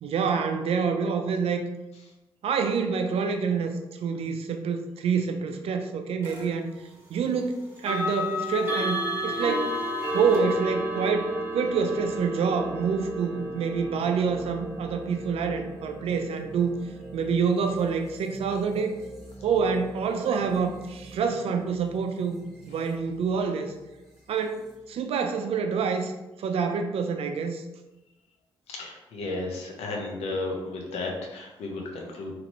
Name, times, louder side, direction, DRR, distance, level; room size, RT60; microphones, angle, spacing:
voice 1, 0.0-1.6 2.4-3.8 4.0-6.7 7.1-9.7 10.1-16.7 17.1-19.0 19.4-22.4 22.7-23.7 24.3-26.1 26.4-27.6, right 5 dB, 70° right, 6 dB, 0.4 m, -27 dB
sound 1, 6.2-6.5 7.8-18.6, equal, 25° right, 1.2 m, -33 dB
sound 2, 11.7-25.2, right 2 dB, ahead, 1.2 m, -46 dB
voice 2, 28.7-32.3, left 2 dB, 80° left, 0 dB, 0.7 m, -33 dB
2.9 x 2.6 x 3.0 m, 1.0 s
supercardioid pair, 60°, 11 cm